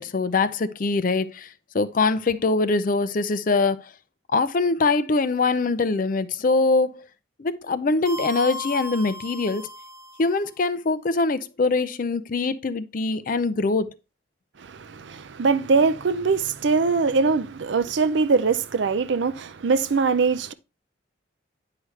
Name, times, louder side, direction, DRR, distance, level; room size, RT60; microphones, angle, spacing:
voice 1, 0.0-1.5 1.7-3.9 4.3-7.0 7.4-9.7 10.2-13.9, left 3 dB, 45° left, 0.4 m, -23 dB
sound 1, 8.1-10.4, left 2 dB, 15° right, 0.8 m, -36 dB
voice 2, 14.6-20.5, right 4 dB, 65° right, 0.5 m, -22 dB
9.5 x 4.8 x 3.2 m
head